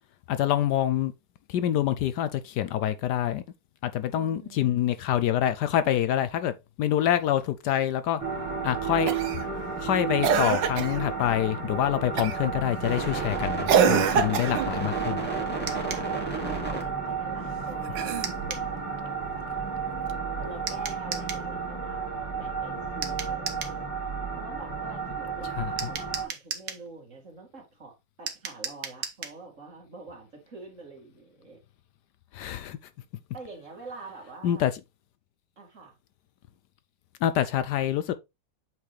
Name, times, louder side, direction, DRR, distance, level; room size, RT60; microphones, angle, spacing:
voice 1, 0.3-1.1 1.5-3.4 3.8-8.2 8.6-9.1 9.8-15.3 25.6-25.9 32.3-32.8 34.4-34.7 37.2-38.1, left 11 dB, 75° left, 1.2 m, -26 dB
voice 2, 4.1-4.8 14.3-19.4 20.4-22.1 22.3-23.8 24.3-31.6 33.3-34.6 35.6-35.9, right 3 dB, 45° right, 2.6 m, -46 dB
sound 1, 8.2-26.2, right 5 dB, 5° left, 2.3 m, -32 dB
Cough, 9.1-9.4 10.2-11.0 12.2-12.5 13.7-14.7 17.8-18.6 20.1-20.2, right 7 dB, 80° right, 1.5 m, -24 dB
sound 2, 15.7-16.1 18.2-18.7 20.7-21.5 23.0-23.8 25.8-26.9 28.3-29.4, right 7 dB, 60° right, 1.5 m, -36 dB
8.4 x 4.6 x 3.2 m
omnidirectional pair, 1.9 m